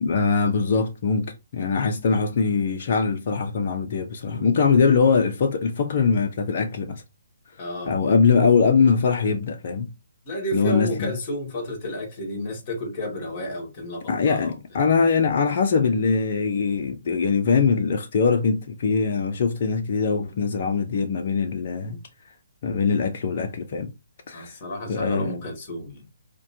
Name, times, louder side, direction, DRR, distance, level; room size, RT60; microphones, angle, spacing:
voice 1, 0.0-7.0 7.9-9.9 10.5-11.1 14.1-22.0 22.6-23.9 24.3-24.5 24.9-25.3, left 5 dB, 50° left, 0.6 m, -22 dB
voice 2, 4.2-4.5 7.6-7.9 10.3-14.6 21.9-22.0 24.3-26.1, equal, 35° left, 2.1 m, -31 dB
4.8 x 2.2 x 2.7 m
hypercardioid pair, 145°, 0 cm